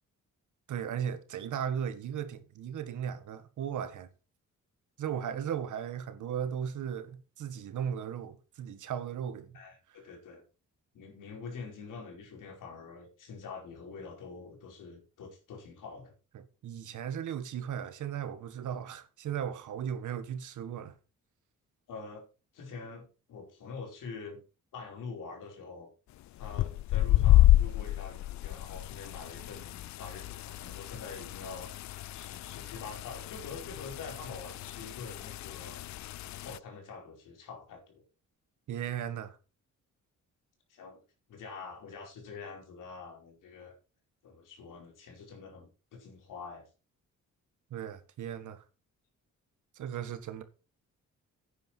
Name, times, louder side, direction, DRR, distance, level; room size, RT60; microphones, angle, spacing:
voice 1, 0.7-4.1 5.0-9.6 16.3-21.0 38.7-39.4 47.7-48.6 49.7-50.4, right 8 dB, 75° right, 1.7 m, -36 dB
voice 2, 9.5-10.4 10.9-16.1 21.9-22.3 22.5-24.4 24.7-25.9 26.4-31.7 32.1-35.8 36.4-38.0 40.7-41.0 41.3-43.7 44.2-46.7, left 4 dB, 90° left, 4.9 m, -45 dB
sound 1, 26.4-36.6, left 15 dB, 65° left, 0.4 m, -29 dB
11.0 x 9.3 x 4.5 m
wide cardioid pair, 165°, 31 cm